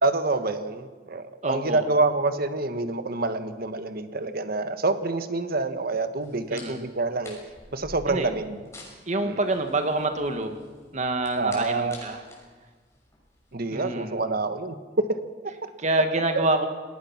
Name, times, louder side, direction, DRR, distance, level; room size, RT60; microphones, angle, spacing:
voice 1, 0.0-7.4 7.7-8.6 9.2-9.4 11.4-12.0 13.5-14.8 15.1-15.2 15.4-15.7 16.3-16.5, right 3 dB, 55° right, 9 dB, 1.4 m, -27 dB
voice 2, 1.4-1.9 6.5-6.8 8.1-8.3 9.1-10.6 10.9-12.2 13.7-14.2 15.8-16.7, right 2 dB, 40° right, 6 dB, 1.8 m, -27 dB
sound 1, 6.2-13.5, left 2 dB, 15° left, 6.0 m, -48 dB
27.0 x 19.0 x 5.9 m, 1.5 s
head